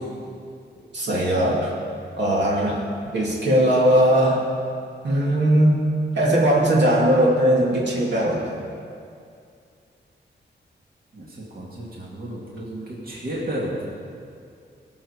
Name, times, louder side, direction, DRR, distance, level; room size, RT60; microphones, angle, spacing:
voice 1, 0.9-1.7 2.2-2.8 3.1-4.5 5.0-5.8 6.1-8.5, right 1 dB, 70° right, -4 dB, 2.3 m, -19 dB
voice 2, 11.1-14.0, right 1 dB, 50° right, -4 dB, 2.2 m, -32 dB
20.0 x 6.8 x 5.0 m, 2.4 s
wide cardioid pair, 140°, 19 cm